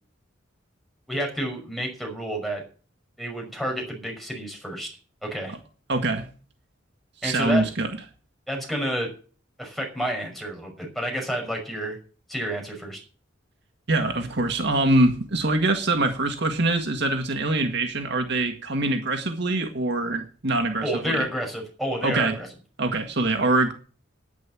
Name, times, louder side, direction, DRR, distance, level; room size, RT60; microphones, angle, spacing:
voice 1, 1.1-2.6 3.2-4.9 5.2-5.5 7.2-7.7 8.5-9.1 9.6-12.0 12.3-13.0 20.8-22.5, equal, ahead, 1 dB, 5.7 m, -29 dB
voice 2, 5.9-6.2 7.2-7.9 13.9-21.3 22.0-22.3 22.8-23.7, right 2 dB, 60° right, 5 dB, 1.9 m, -24 dB
11.0 x 10.0 x 7.4 m, 0.38 s
head